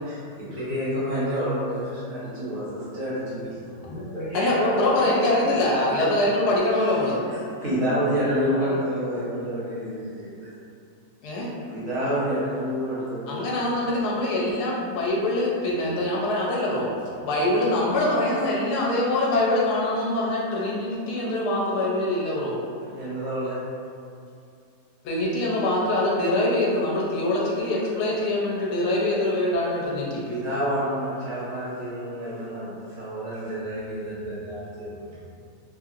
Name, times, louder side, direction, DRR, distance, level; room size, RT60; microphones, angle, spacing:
voice 1, 0.0-3.6 7.3-10.5 11.4-13.3 22.9-23.6 30.1-34.9, equal, 60° right, -9 dB, 1.1 m, -29 dB
voice 2, 3.5-5.0 5.4-5.9 8.2-9.3 35.0-35.3, equal, 40° left, -14 dB, 0.7 m, -35 dB
voice 3, 4.3-7.2 11.2-11.5 13.3-16.9 17.2-22.6 25.0-30.2, left 1 dB, 75° left, -4 dB, 1.1 m, -24 dB
2.8 x 2.7 x 2.4 m, 2.4 s
omnidirectional pair, 1.7 m